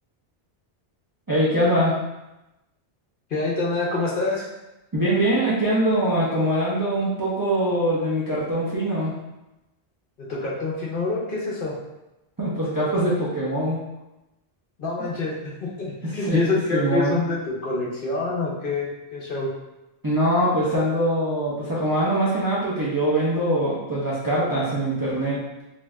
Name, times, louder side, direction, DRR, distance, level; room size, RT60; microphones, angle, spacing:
voice 1, 1.3-1.9 4.9-9.1 12.4-13.8 16.2-17.1 20.0-25.4, right 1 dB, 25° right, -9 dB, 0.5 m, -23 dB
voice 2, 3.3-4.5 10.2-11.7 14.8-15.4 15.6-19.5, left 3 dB, 55° left, -4 dB, 0.8 m, -26 dB
2.6 x 2.4 x 3.2 m, 0.96 s
omnidirectional pair, 1.1 m